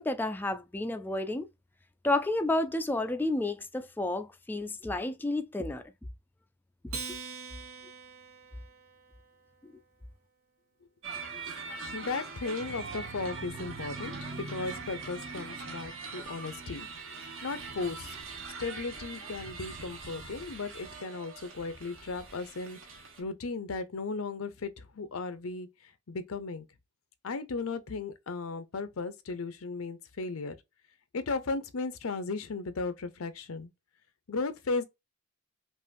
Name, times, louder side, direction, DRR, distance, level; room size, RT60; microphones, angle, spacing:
voice 1, 0.0-1.5 2.0-5.8 7.1-7.2, left 2 dB, 10° left, 0.3 m, -31 dB
Acoustic guitar, 6.9-9.6, right 4 dB, 90° right, 1.3 m, -43 dB
sound 1, 11.0-23.2, right 4 dB, 65° right, 1.3 m, -43 dB
voice 2, 11.9-14.1 14.4-17.2 17.4-18.2 18.6-25.7 26.1-26.6 27.2-30.6 31.1-33.7 34.3-34.8, left 3 dB, 85° left, 0.7 m, -36 dB
sound 2, 12.6-17.7, right 3 dB, 50° right, 0.8 m, -46 dB
5.5 x 2.5 x 2.5 m
head